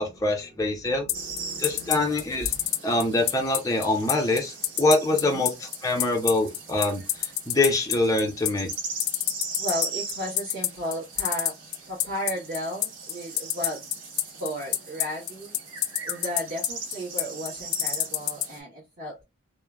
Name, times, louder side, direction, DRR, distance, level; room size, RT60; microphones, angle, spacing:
voice 1, 0.0-1.1 1.6-2.5 2.8-7.0 7.5-8.7, left 2 dB, 15° left, 0.5 m, -24 dB
voice 2, 0.8-2.7 5.1-5.5 9.6-11.6 11.9-13.9 14.3-15.5 16.0-19.2, equal, 45° right, 1.3 m, -35 dB
sound 1, 1.1-18.5, left 13 dB, 85° left, 0.4 m, -26 dB
sound 2, 1.1-18.6, right 4 dB, 75° right, 1.0 m, -40 dB
3.1 x 2.1 x 2.3 m
head